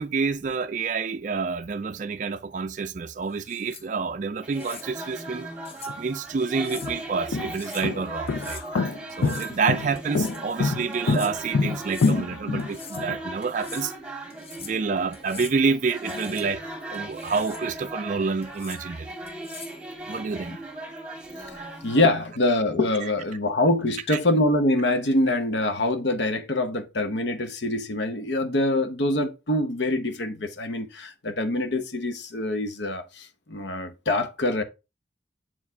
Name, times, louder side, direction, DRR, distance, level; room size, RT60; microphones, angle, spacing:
voice 1, 0.0-5.5 6.0-8.8 9.2-13.9 14.6-16.6 16.9-19.1 20.1-20.6 24.1-24.2, right 5 dB, 40° right, 0.3 m, -28 dB
sound 1, 3.3-3.9 4.5-4.9 5.7-6.0 6.5-6.9 7.4-7.9 8.3-8.7 9.1-9.6 10.0-10.4 10.9-11.3 11.8-12.2 12.6-13.1 13.4-13.9 14.3-14.8 15.1-15.6 16.0-16.5 16.9-17.7 18.4-18.8 19.3-19.8, left 7 dB, 30° left, 0.6 m, -43 dB
sound 2, 4.4-22.1, right 1 dB, 5° right, 1.8 m, -38 dB
sound 3, 5.9-6.0 6.6-13.2, left 4 dB, 85° left, 0.5 m, -25 dB
voice 2, 21.5-34.6, left 1 dB, 65° left, 0.9 m, -25 dB
7.3 x 4.7 x 3.4 m
head